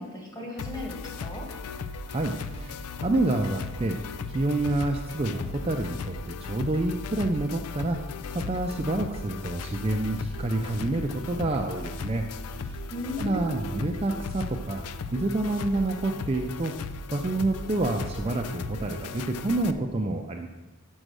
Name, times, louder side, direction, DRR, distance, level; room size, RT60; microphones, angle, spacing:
voice 1, 0.0-1.5 12.9-13.7, left 1 dB, 15° left, -2 dB, 1.8 m, -36 dB
sound 1, 0.6-19.7, left 4 dB, 90° left, 0.4 m, -37 dB
voice 2, 2.1-4.0 4.3-8.0 8.3-12.3 12.6-12.8 13.2-14.8 15.1-16.7 17.1-20.5, right 2 dB, 25° right, 3 dB, 0.4 m, -28 dB
6.5 x 6.3 x 6.2 m, 1.1 s
head